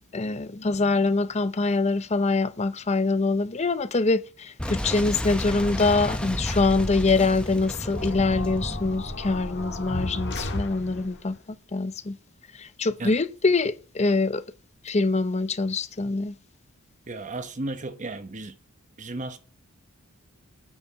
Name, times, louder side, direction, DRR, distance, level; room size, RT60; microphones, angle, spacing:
voice 1, 0.1-11.4 11.7-12.2 12.5-14.4 14.8-16.4, left 3 dB, 30° left, 0.6 m, -24 dB
Boom, 4.6-10.2, equal, 5° left, 0.9 m, -32 dB
sound 1, 7.9-11.3, left 2 dB, 55° left, 1.6 m, -34 dB
voice 2, 17.1-18.6 19.0-19.4, right 2 dB, 35° right, 1.0 m, -34 dB
8.8 x 4.8 x 7.2 m
head